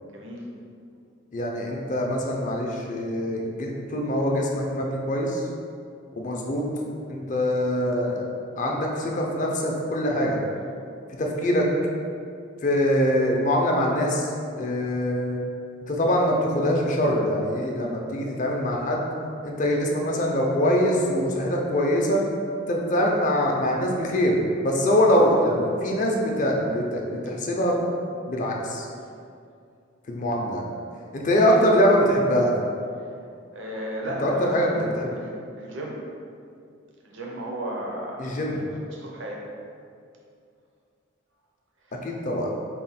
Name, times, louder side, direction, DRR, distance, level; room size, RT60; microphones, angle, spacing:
voice 1, 0.1-0.5 31.2-31.6 33.5-34.8 35.2-36.0 37.0-39.4 41.9-42.1, equal, 60° right, -2 dB, 0.5 m, -35 dB
voice 2, 1.3-5.4 6.2-6.7 7.1-8.2 8.6-10.4 11.2-11.7 12.6-14.3 14.6-15.4 15.9-19.0 19.4-22.2 22.7-27.8 28.3-28.9 30.1-30.6 31.1-32.5 34.2-35.2 38.2-38.6 42.0-42.5, equal, 35° left, 0 dB, 0.4 m, -23 dB
4.0 x 2.2 x 4.1 m, 2.4 s
head